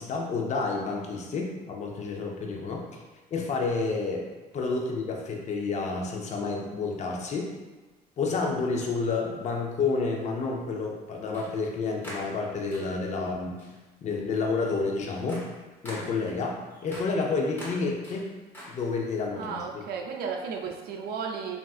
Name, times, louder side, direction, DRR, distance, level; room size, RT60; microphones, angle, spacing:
voice 1, 0.0-3.0 3.3-4.3 4.5-7.5 8.2-13.6 14.0-15.5 15.8-18.3 18.7-19.8, left 4 dB, 45° left, 1 dB, 0.5 m, -30 dB
sound 1, 6.0-6.1 7.7-7.9 8.9-9.0 11.3-11.7 12.0-13.1 13.6-13.9 14.3-19.2, equal, 10° left, 1.0 m, -45 dB
voice 2, 19.3-21.6, right 6 dB, 70° right, 1 dB, 0.5 m, -34 dB
3.5 x 2.4 x 2.3 m, 1.2 s
cardioid pair, 110°, 17 cm